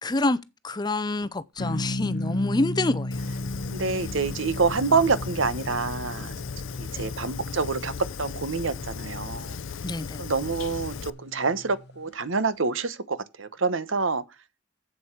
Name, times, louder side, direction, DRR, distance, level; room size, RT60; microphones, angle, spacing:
voice 1, 0.0-3.2 6.9-7.0 9.8-10.2, left 2 dB, 20° left, 0.5 m, -27 dB
sound 1, 1.6-12.1, left 1 dB, 55° left, 0.9 m, -36 dB
Fire, 3.1-11.1, left 6 dB, 75° left, 0.5 m, -37 dB
voice 2, 3.7-6.3 6.8-7.9 8.2-9.6 10.2-14.2, right 4 dB, 75° right, 1.0 m, -27 dB
7.9 x 7.8 x 5.8 m
head